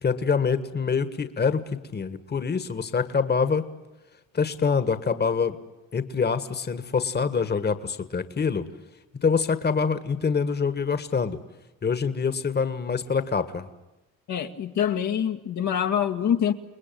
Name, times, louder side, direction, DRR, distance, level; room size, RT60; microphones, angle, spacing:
voice 1, 0.0-3.7 4.3-5.6 5.9-8.7 9.2-11.4 11.8-13.7, left 5 dB, 35° left, 1.7 m, -25 dB
voice 2, 14.3-16.5, left 9 dB, 70° left, 2.0 m, -25 dB
29.5 x 20.5 x 9.3 m
cardioid pair, 90°, 30 cm